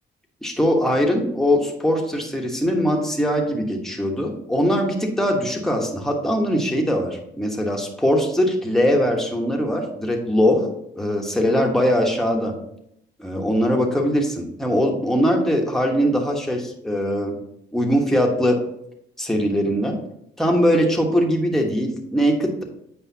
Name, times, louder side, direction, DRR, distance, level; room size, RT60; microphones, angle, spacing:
voice 1, 0.4-10.7 11.0-12.5 13.2-17.3 17.7-18.6 19.2-20.0 20.4-22.6, equal, ahead, 0 dB, 1.2 m, -21 dB
8.0 x 5.0 x 2.8 m, 0.76 s
cardioid pair, 90°, 20 cm